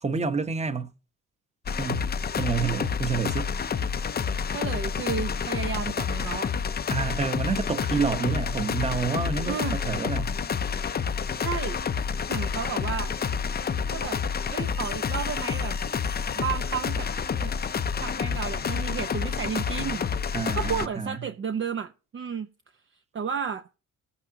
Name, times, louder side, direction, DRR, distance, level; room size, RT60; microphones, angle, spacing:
voice 1, 0.0-0.9 1.8-2.1 2.4-3.5 6.9-10.3 20.3-21.2, right 5 dB, 20° right, 1.0 m, -28 dB
sound 1, 1.7-20.9, left 6 dB, 35° left, 0.6 m, -29 dB
voice 2, 4.5-6.5 9.5-9.8 11.3-11.8 12.3-13.1 13.9-14.2 14.5-15.8 16.4-17.1 17.3-17.5 18.0-20.0 20.5-22.5 23.1-23.7, right 7 dB, 40° right, 0.6 m, -32 dB
19.0 x 8.4 x 2.8 m
cardioid pair, 90°, 30 cm